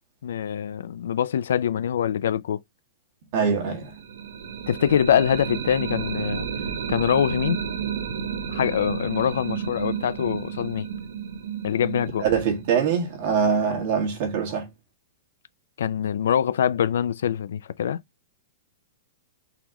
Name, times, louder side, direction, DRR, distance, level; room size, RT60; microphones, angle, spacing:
voice 1, 0.2-2.6 4.7-6.5 6.9-7.6 8.5-10.9 11.6-12.3 15.8-18.0, left 9 dB, 80° left, 0.3 m, -24 dB
voice 2, 3.3-3.9 12.2-14.7, right 6 dB, 45° right, 1.5 m, -23 dB
sound 1, 3.8-13.6, right 7 dB, 65° right, 0.9 m, -32 dB
4.0 x 3.0 x 3.8 m
supercardioid pair, 170°, 0 cm